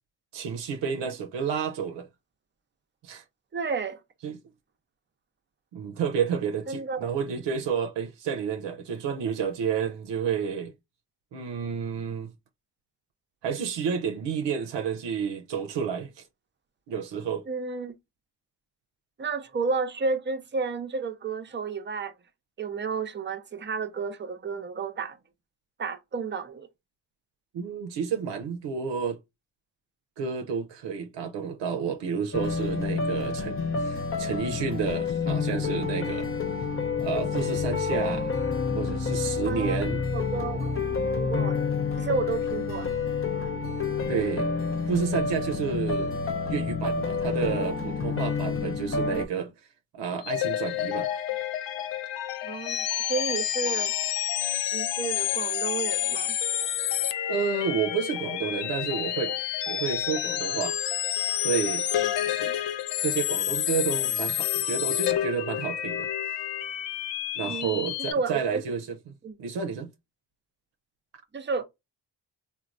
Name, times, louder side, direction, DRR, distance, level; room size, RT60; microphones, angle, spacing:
voice 1, 0.3-2.1 3.0-3.2 4.2-4.4 5.7-10.7 11.3-12.3 13.4-16.2 16.9-17.4 27.5-29.2 30.2-36.3 37.0-38.3 38.7-40.0 44.1-44.5 44.9-49.5 49.9-51.1 57.3-59.4 59.7-60.8 61.4-61.9 62.4-62.5 63.0-66.1 67.4-68.9 69.4-69.9, right 6 dB, 85° right, 0.6 m, -30 dB
voice 2, 3.5-4.0 6.7-7.0 17.5-17.9 19.2-22.1 22.6-25.2 25.8-26.7 39.5-39.8 40.1-40.7 41.1-41.6 42.0-42.9 52.4-52.8 53.1-53.9 54.7-56.4 62.1-62.5 67.4-67.8 68.1-68.6 69.2-69.4 71.3-71.6, right 4 dB, 25° right, 0.6 m, -31 dB
sound 1, 32.3-49.3, left 5 dB, 30° left, 0.6 m, -29 dB
sound 2, 50.2-68.1, left 11 dB, 80° left, 0.5 m, -29 dB
3.0 x 2.2 x 2.4 m
cardioid pair, 55°, 42 cm